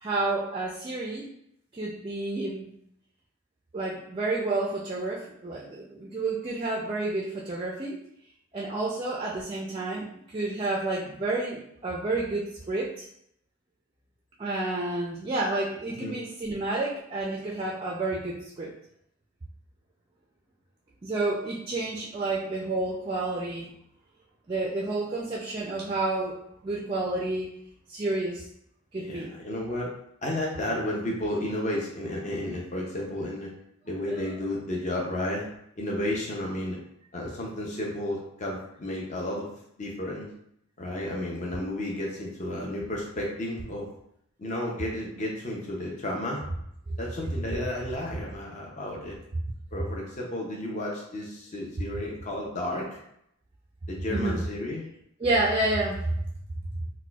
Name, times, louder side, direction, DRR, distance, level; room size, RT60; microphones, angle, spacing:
voice 1, 0.0-1.3 1.7-2.7 3.7-8.0 8.5-10.1 10.3-13.1 14.4-18.7 21.0-23.7 24.5-26.4 26.6-27.5 27.9-28.5 28.9-29.3 34.1-34.2 46.9-47.0 54.1-54.4 55.2-56.2, right 2 dB, 25° right, -2 dB, 0.3 m, -30 dB
voice 2, 29.0-29.9 30.2-33.5 33.8-35.5 35.8-36.8 37.1-39.5 39.8-40.3 40.8-43.9 44.4-46.4 47.0-49.2 49.7-53.0 53.9-54.8, left 1 dB, 35° left, -2 dB, 0.5 m, -32 dB
4.1 x 2.2 x 2.3 m, 0.73 s
head